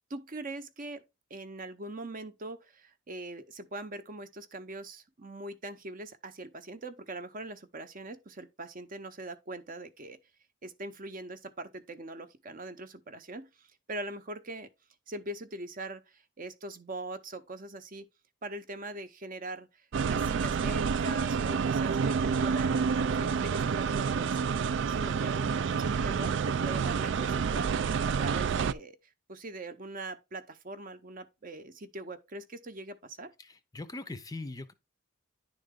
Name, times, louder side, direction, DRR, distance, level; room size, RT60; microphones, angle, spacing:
voice 1, 0.1-1.0 1.3-10.2 10.6-14.7 15.1-18.0 18.4-29.0 29.3-33.3, right 2 dB, 40° right, 0.7 m, -42 dB
sound 1, 19.9-28.7, right 6 dB, 60° right, 0.3 m, -29 dB
voice 2, 33.4-34.7, left 2 dB, 20° left, 0.5 m, -41 dB
10.0 x 3.9 x 3.6 m
head